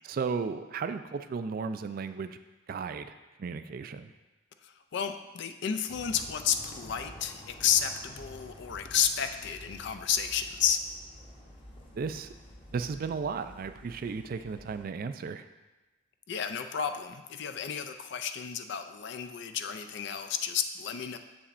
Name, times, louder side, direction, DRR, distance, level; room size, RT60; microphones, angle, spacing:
voice 1, 0.0-2.4 2.7-3.1 3.4-4.1 11.9-12.3 12.7-15.5, right 5 dB, 45° right, 10 dB, 0.3 m, -34 dB
voice 2, 4.6-10.8 16.3-21.2, left 8 dB, 60° left, 8 dB, 0.4 m, -31 dB
sound 1, 5.9-14.8, left 1 dB, 25° left, 0.9 m, -50 dB
7.1 x 7.0 x 2.5 m, 1.1 s
head